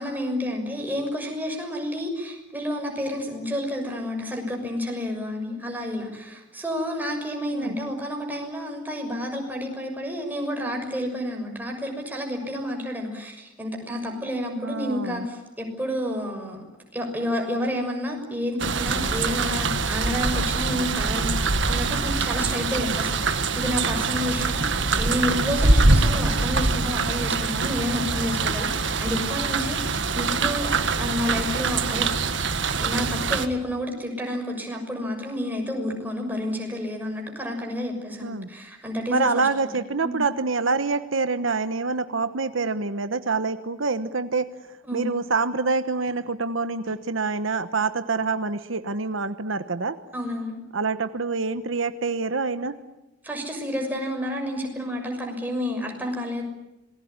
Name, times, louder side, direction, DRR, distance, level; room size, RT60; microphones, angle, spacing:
voice 1, 0.0-16.6 16.9-32.1 32.8-39.7 40.0-40.2 44.9-45.1 50.1-50.6 53.2-56.4, left 1 dB, 10° right, 2 dB, 6.4 m, -30 dB
voice 2, 14.6-15.3 22.7-23.0 38.2-38.5 39.1-44.5 44.9-50.0 50.7-52.8, right 4 dB, 80° right, 11 dB, 1.2 m, -26 dB
sound 1, 18.6-33.5, right 3 dB, 65° right, 1.7 m, -24 dB
27.0 x 20.5 x 9.6 m, 0.96 s
head